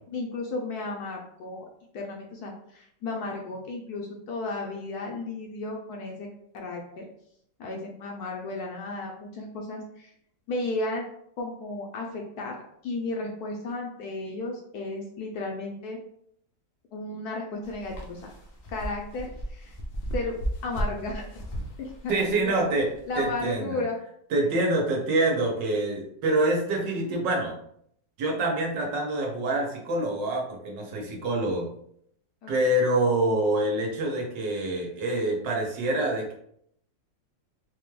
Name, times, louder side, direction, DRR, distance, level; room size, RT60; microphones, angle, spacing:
voice 1, 0.1-1.7 1.9-6.3 6.5-7.0 7.6-10.1 10.5-11.1 11.4-12.6 12.8-16.0 16.9-18.3 18.7-19.8 20.1-20.4 20.6-21.4 21.8-22.5 23.1-24.0 32.4-32.5, left 2 dB, 70° left, 0 dB, 1.0 m, -34 dB
sound 1, 17.6-23.5, right 1 dB, 85° left, 0.5 m, -35 dB
voice 2, 22.1-22.9 23.2-23.8 24.3-27.6 28.2-31.7 32.5-36.3, right 1 dB, 75° right, 0 dB, 1.5 m, -26 dB
4.2 x 2.3 x 3.1 m, 0.70 s
omnidirectional pair, 1.9 m